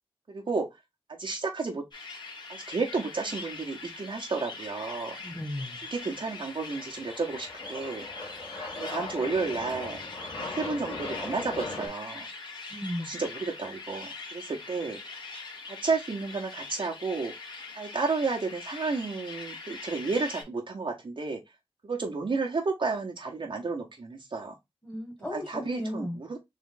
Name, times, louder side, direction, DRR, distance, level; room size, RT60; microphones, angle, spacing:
voice 1, 0.3-0.7 1.2-1.8 2.5-5.2 5.9-8.1 8.7-10.0 10.4-12.3 13.0-15.0 15.7-17.3 17.7-21.4 21.8-24.5 25.3-26.4, right 4 dB, 60° right, 0.8 m, -32 dB
sound 1, 1.9-20.4, left 3 dB, 50° left, 1.8 m, -42 dB
voice 2, 5.2-5.8 12.7-13.1 24.8-26.2, left 1 dB, 10° left, 1.6 m, -35 dB
Aircraft, 6.1-11.9, left 2 dB, 80° left, 2.0 m, -39 dB
3.6 x 3.2 x 3.8 m
wide cardioid pair, 85°, 10 cm